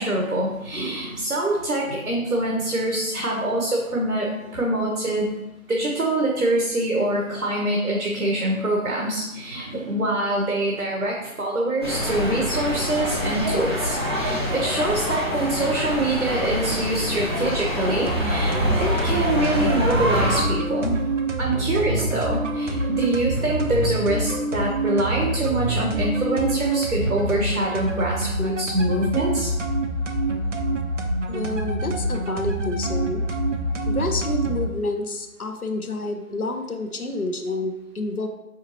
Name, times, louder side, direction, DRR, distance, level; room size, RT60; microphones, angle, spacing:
voice 1, 0.0-5.3 5.7-21.0 21.4-29.5, right 1 dB, 80° right, -2 dB, 1.4 m, -25 dB
sound 1, 11.8-20.4, equal, 20° right, 0.6 m, -26 dB
sound 2, 18.1-34.7, right 2 dB, 55° right, 0.8 m, -26 dB
voice 2, 31.3-33.2 33.9-38.3, left 2 dB, 80° left, 5 dB, 0.9 m, -29 dB
6.0 x 5.6 x 2.9 m, 0.95 s
figure-of-eight pair, 145°, 43 cm